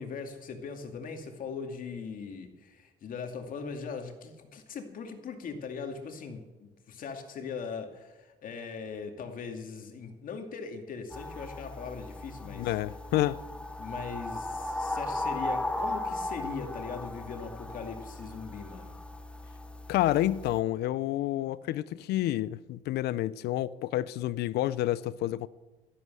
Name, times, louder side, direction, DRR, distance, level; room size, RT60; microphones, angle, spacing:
voice 1, 0.0-12.7 13.8-18.9, left 5 dB, 55° left, 2.2 m, -40 dB
sound 1, 11.1-20.6, left 1 dB, 5° left, 0.8 m, -37 dB
voice 2, 12.5-13.4 19.9-25.5, left 14 dB, 75° left, 0.5 m, -29 dB
13.0 x 11.0 x 7.6 m
cardioid pair, 110°, 17 cm